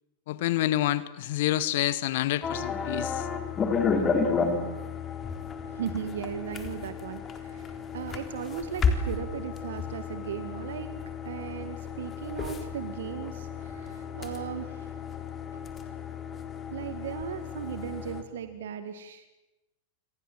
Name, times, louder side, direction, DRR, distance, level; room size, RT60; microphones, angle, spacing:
voice 1, 0.3-3.3, left 14 dB, 55° left, 17 dB, 1.2 m, -28 dB
sound 1, 2.4-18.2, left 5 dB, 25° left, 3.8 m, -32 dB
voice 2, 5.4-10.9 11.2-15.2 15.5-15.6 16.7-19.3, right 9 dB, 60° right, 10 dB, 1.9 m, -37 dB
29.0 x 26.0 x 7.6 m, 0.99 s
figure-of-eight pair, 90°, 0 cm